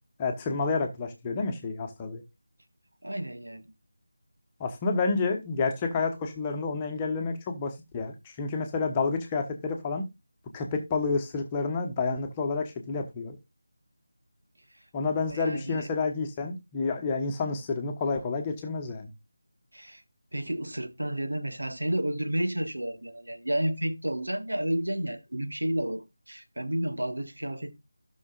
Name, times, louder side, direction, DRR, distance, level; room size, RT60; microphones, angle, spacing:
voice 1, 0.2-2.2 4.6-10.0 10.5-13.4 14.9-19.1, left 4 dB, 15° left, 1.2 m, -29 dB
voice 2, 3.0-3.7 14.7-14.8 15.3-15.9 19.7-20.0 20.3-27.7, right 1 dB, 75° right, 1.4 m, -31 dB
16.0 x 6.3 x 2.4 m
figure-of-eight pair, 165°, 0 cm